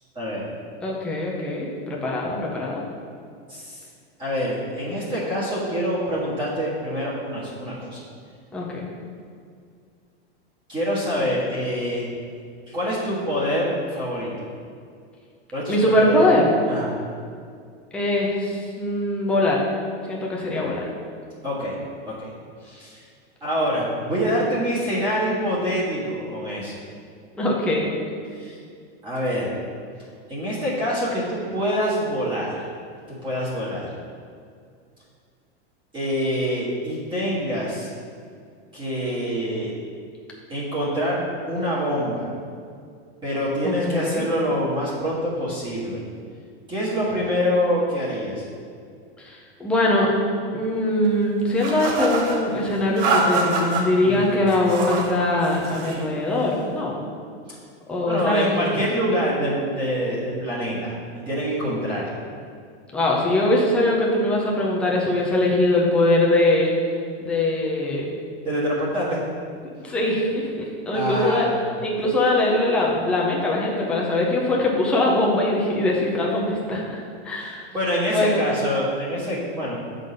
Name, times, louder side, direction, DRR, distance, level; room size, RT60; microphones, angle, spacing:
voice 1, 0.1-0.5 3.5-3.8 4.2-8.0 10.7-12.1 12.7-14.3 15.5-16.4 16.7-16.9 21.4-21.8 22.1-22.3 22.6-23.0 23.4-26.7 28.3-28.6 29.0-29.5 30.3-32.7 33.1-33.9 35.9-37.9 38.7-39.7 40.5-41.2 41.5-42.3 43.2-46.0 46.7-48.5 54.0-54.3 58.0-62.2 68.4-69.2 70.9-71.6 77.4-79.8, equal, 15° right, -8 dB, 1.6 m, -25 dB
voice 2, 0.8-2.8 8.5-8.9 15.7-16.5 17.9-19.6 20.1-20.8 27.4-27.9 43.6-44.3 49.2-50.1 50.5-56.9 57.9-58.8 62.9-66.8 67.2-68.1 69.8-71.5 71.8-77.7 78.1-78.5, left 1 dB, 5° left, -4 dB, 0.5 m, -22 dB
sound 1, 51.6-52.4 53.0-53.8 54.5-55.1 55.4-56.0, right 3 dB, 35° right, 0.9 m, -25 dB
7.2 x 3.9 x 5.0 m, 2.2 s
supercardioid pair, 160°, 33 cm